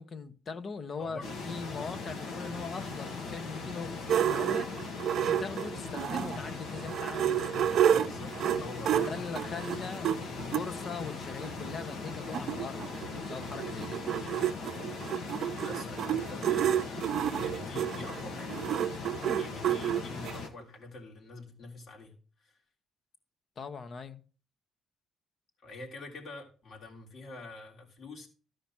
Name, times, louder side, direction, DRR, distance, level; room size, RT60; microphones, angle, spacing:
voice 1, 0.0-4.7 5.2-7.4 9.0-12.9 13.3-14.0 23.6-24.2, left 5 dB, 50° left, 1.0 m, -40 dB
voice 2, 1.0-1.4 7.8-9.2 15.6-18.8 19.4-22.6 25.6-28.3, left 2 dB, 65° left, 3.4 m, -46 dB
sound 1, 1.2-20.5, left 3 dB, 90° left, 1.7 m, -40 dB
sound 2, 4.1-6.4 6.8-10.6 11.4-11.5 11.8-11.9 12.1-20.4, right 10 dB, 70° right, 0.6 m, -30 dB
13.5 x 5.0 x 6.0 m
cardioid pair, 90°, 0 cm